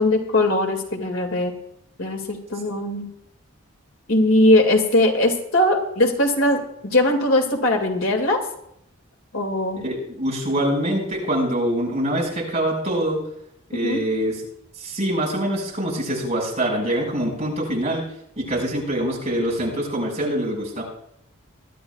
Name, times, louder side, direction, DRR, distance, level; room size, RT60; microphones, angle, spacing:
voice 1, 0.0-1.5 2.0-3.1 4.1-8.4 9.3-9.8 13.8-14.0, left 1 dB, 75° left, 3 dB, 2.2 m, -20 dB
voice 2, 9.8-13.2 13.7-14.3 14.8-18.0 18.4-20.8, right 1 dB, 30° right, -2 dB, 5.2 m, -24 dB
22.5 x 12.0 x 2.3 m, 0.74 s
head